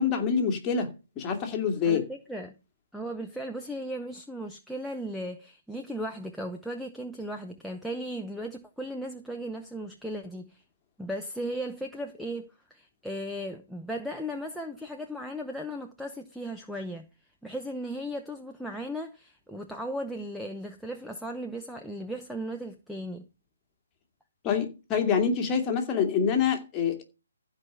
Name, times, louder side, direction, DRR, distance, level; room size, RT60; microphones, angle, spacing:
voice 1, 0.0-2.0 24.4-27.0, left 6 dB, 20° left, 2.5 m, -26 dB
voice 2, 1.8-2.6 2.9-10.6 11.0-17.1 17.4-23.3, equal, ahead, 0.8 m, -36 dB
15.0 x 5.0 x 7.0 m
figure-of-eight pair, 145°, 0 cm